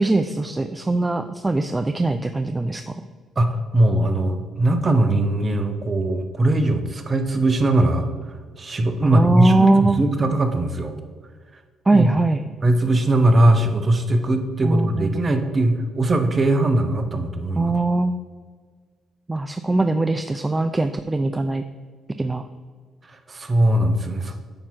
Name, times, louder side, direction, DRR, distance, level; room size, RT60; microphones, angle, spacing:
voice 1, 0.0-2.9 9.0-10.0 11.9-12.4 14.6-15.1 17.6-18.1 19.3-21.6 22.2-22.5, right 2 dB, 20° right, 9 dB, 0.3 m, -21 dB
voice 2, 3.4-8.1 8.6-11.0 11.9-12.1 12.6-17.7 23.1-24.3, right 1 dB, 35° right, 7 dB, 0.8 m, -20 dB
8.8 x 3.0 x 5.7 m, 1.5 s
cardioid pair, 90°, 0 cm